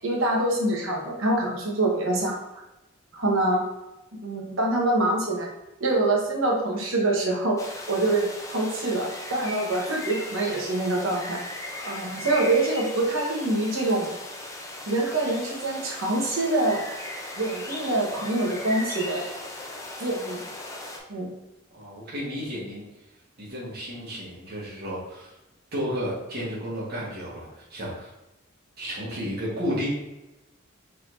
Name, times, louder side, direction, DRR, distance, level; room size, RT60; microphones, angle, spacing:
voice 1, 0.0-2.4 3.1-3.6 4.2-5.5 5.8-7.6 7.9-11.4 11.8-14.1 14.9-16.9 17.4-19.2 20.0-20.4 21.1-21.3, right 2 dB, 85° right, -1 dB, 1.2 m, -25 dB
sound 1, 7.6-21.0, left 1 dB, 15° left, 0.6 m, -37 dB
voice 2, 21.7-22.8 23.4-25.3 25.7-28.1 28.8-29.9, equal, 50° right, -8 dB, 1.5 m, -32 dB
4.6 x 4.1 x 2.6 m, 0.98 s
head